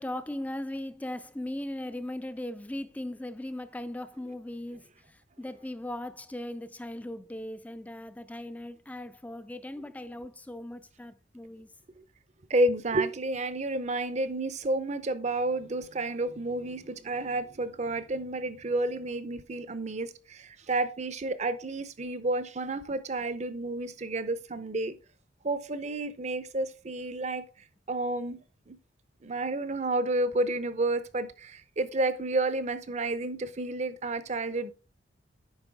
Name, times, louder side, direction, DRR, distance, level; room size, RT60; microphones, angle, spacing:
voice 1, 0.0-11.7, left 1 dB, 10° left, 0.4 m, -38 dB
voice 2, 12.5-25.0 25.4-27.5 27.9-28.8 29.2-34.7, right 2 dB, 35° right, 0.6 m, -30 dB
8.9 x 5.4 x 3.5 m
head